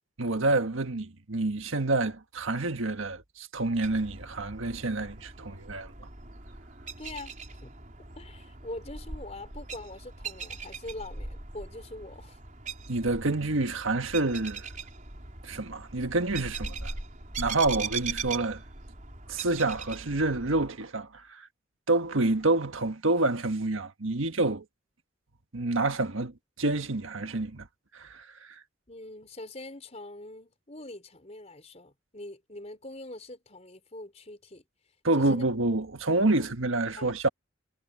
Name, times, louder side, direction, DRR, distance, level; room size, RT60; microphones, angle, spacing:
voice 1, 0.2-5.9 12.9-14.7 15.4-16.9 17.4-18.6 19.3-21.5 21.9-24.6 25.5-27.7 27.9-28.6 35.0-37.3, right 2 dB, 80° right, 1.5 m, -28 dB
sound 1, 3.8-20.7, right 4 dB, 40° right, 4.3 m, -40 dB
voice 2, 7.0-7.3 7.6-7.7 8.2-12.4 28.9-34.6 35.1-35.5 36.4-36.5 37.0-37.3, left 2 dB, 35° left, 4.4 m, -43 dB
head